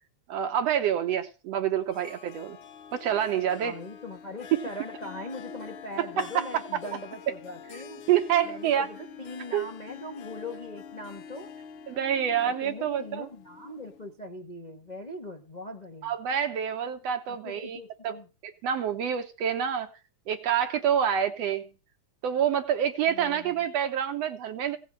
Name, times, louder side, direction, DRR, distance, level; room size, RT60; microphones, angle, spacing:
voice 1, 0.3-2.6 2.9-3.7 6.2-6.5 8.1-8.9 9.5-9.7 11.9-13.3 16.0-17.8 18.0-18.2 18.4-19.9 20.3-21.7 22.2-24.8, right 9 dB, 65° right, 1.8 m, -27 dB
Harp, 1.9-14.1, left 7 dB, 80° left, 2.8 m, -45 dB
voice 2, 3.6-8.0 8.4-11.5 12.4-16.1 17.3-18.3 23.1-23.6, left 2 dB, 30° left, 0.7 m, -41 dB
16.5 x 6.0 x 7.5 m
omnidirectional pair, 3.4 m